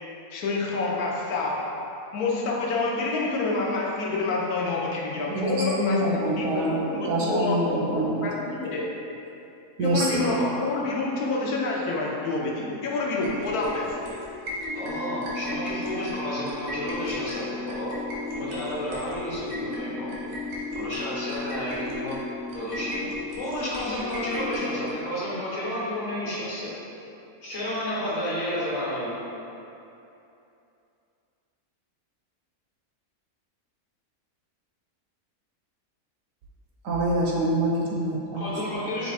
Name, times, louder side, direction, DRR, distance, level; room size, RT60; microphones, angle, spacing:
voice 1, 0.3-1.6 2.1-8.9 9.8-14.0, left 3 dB, 75° left, -3 dB, 1.2 m, -28 dB
voice 2, 5.3-8.2 9.8-10.2 36.8-38.6, right 1 dB, 70° right, -2 dB, 0.9 m, -25 dB
sound 1, 13.2-24.9, left 2 dB, 90° right, 1.4 m, -35 dB
voice 3, 14.7-18.0 18.3-20.3 20.7-22.2 22.5-26.7 27.4-29.2 38.3-39.1, left 1 dB, 50° left, -8 dB, 1.3 m, -31 dB
5.6 x 2.4 x 4.0 m, 2.8 s
omnidirectional pair, 1.6 m